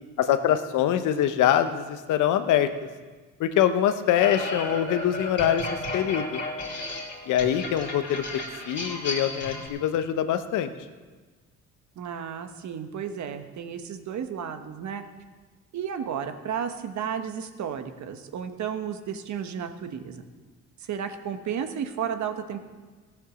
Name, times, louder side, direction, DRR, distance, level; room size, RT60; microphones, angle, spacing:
voice 1, 0.2-2.7 3.4-6.4 7.3-8.2 8.7-10.7, left 10 dB, 85° left, 10 dB, 0.9 m, -24 dB
sound 1, 4.2-9.7, left 2 dB, 35° left, 2.7 m, -33 dB
voice 2, 12.0-15.0 15.7-20.2 20.8-22.6, right 8 dB, 65° right, 8 dB, 1.2 m, -33 dB
15.0 x 7.3 x 6.3 m, 1.3 s
cardioid pair, 90°, 30 cm